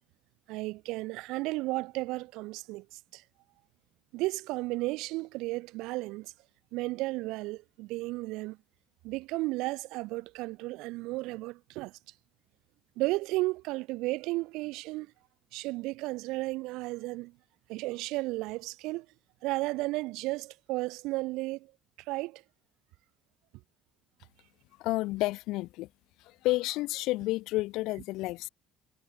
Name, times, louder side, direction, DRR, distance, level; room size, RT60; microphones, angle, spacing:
voice 1, 0.5-3.2 4.1-6.3 6.7-8.6 9.0-11.9 13.0-15.1 15.5-17.3 17.7-19.1 19.4-21.7 22.1-22.4, right 21 dB, 85° right, 0.4 m, -33 dB
voice 2, 24.8-25.9 26.2-28.5, left 19 dB, 80° left, 0.4 m, -30 dB
cardioid pair, 135°, 0 cm